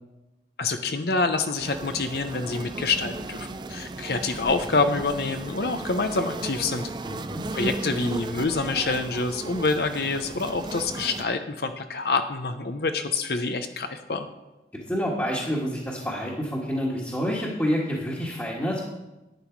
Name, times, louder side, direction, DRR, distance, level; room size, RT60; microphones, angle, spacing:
voice 1, 0.6-6.9 7.5-14.3, left 3 dB, 60° left, 8 dB, 0.7 m, -27 dB
sound 1, 1.6-11.2, right 2 dB, 25° right, 0.4 m, -36 dB
voice 2, 7.0-7.4 14.9-18.8, equal, 10° left, -6 dB, 1.6 m, -28 dB
11.0 x 9.2 x 4.6 m, 1.0 s
head